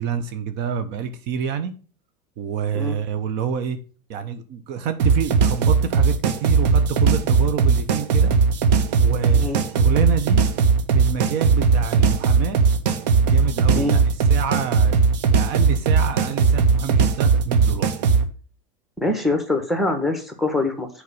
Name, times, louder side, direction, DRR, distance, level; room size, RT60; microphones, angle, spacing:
voice 1, 0.0-1.7 2.4-3.8 4.1-8.3 9.0-10.4 10.9-12.6 13.2-15.0 15.3-17.9, right 7 dB, 55° right, 10 dB, 1.1 m, -27 dB
sound 1, 5.0-18.2, right 5 dB, 75° right, 1.2 m, -18 dB
voice 2, 19.0-20.9, left 2 dB, ahead, 6 dB, 1.6 m, -23 dB
6.8 x 4.8 x 7.0 m, 0.38 s
supercardioid pair, 125°, 21 cm